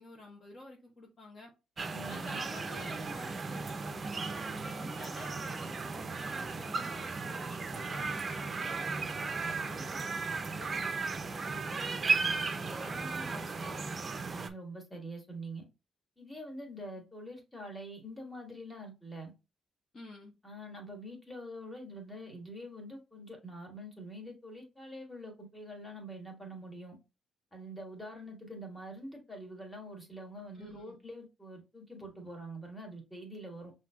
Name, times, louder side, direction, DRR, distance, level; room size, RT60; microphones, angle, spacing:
voice 1, 0.0-1.5 2.1-8.7 9.4-12.2 12.8-13.8 19.9-20.3 30.5-31.0, left 2 dB, 40° left, 0.9 m, -50 dB
sound 1, 1.8-14.5, right 4 dB, 35° right, 0.5 m, -35 dB
voice 2, 1.9-2.4 14.2-15.6 16.2-19.3 20.4-27.0 27.5-33.7, right 1 dB, 10° left, 1.5 m, -45 dB
5.5 x 2.6 x 2.3 m
cardioid pair, 105°, 0 cm